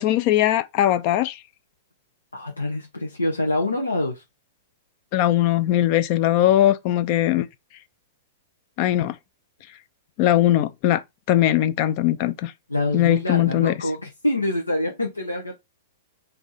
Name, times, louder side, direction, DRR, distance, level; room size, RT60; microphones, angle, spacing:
voice 1, 0.0-1.4 5.1-7.5 8.8-9.2 10.2-11.0 11.3-12.5 12.9-13.7, left 13 dB, 40° left, 0.5 m, -20 dB
voice 2, 2.3-4.2 12.7-15.6, left 1 dB, 85° left, 0.8 m, -26 dB
3.4 x 2.7 x 4.1 m
figure-of-eight pair, 105°, 0 cm